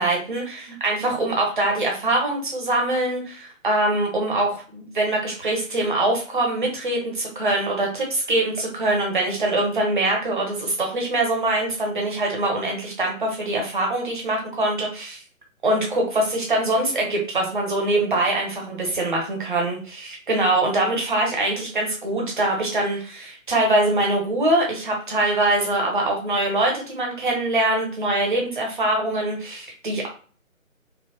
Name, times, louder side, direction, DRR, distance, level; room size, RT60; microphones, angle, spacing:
voice 1, 0.0-15.2 15.6-30.1, right 2 dB, 35° right, 0 dB, 0.9 m, -23 dB
2.8 x 2.2 x 2.8 m, 0.41 s
figure-of-eight pair, 150°, 41 cm